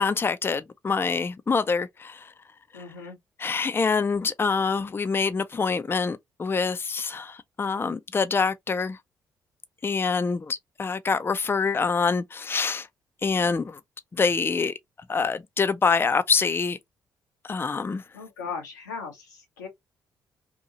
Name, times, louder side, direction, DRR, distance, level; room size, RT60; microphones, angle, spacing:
voice 1, 0.0-2.3 2.7-2.8 3.4-9.0 9.8-12.9 13.2-13.8 14.1-14.7 15.1-16.8 17.4-18.0, left 5 dB, 25° left, 0.4 m, -25 dB
voice 2, 2.7-3.2 18.1-19.7, left 5 dB, 90° left, 0.9 m, -37 dB
2.9 x 2.6 x 2.5 m
hypercardioid pair, 45°, 9 cm